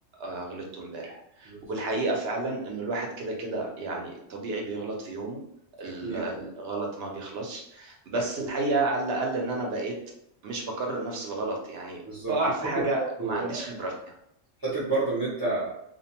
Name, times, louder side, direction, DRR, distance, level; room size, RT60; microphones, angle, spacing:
voice 1, 0.2-5.4 5.8-9.9 10.4-14.1, right 2 dB, 60° right, 0 dB, 0.8 m, -31 dB
voice 2, 5.8-6.2 8.1-8.5 12.0-12.4 12.8-12.9 13.2-13.6 14.6-15.8, right 3 dB, 30° right, -9 dB, 0.4 m, -30 dB
2.5 x 2.1 x 2.8 m, 0.76 s
omnidirectional pair, 1.3 m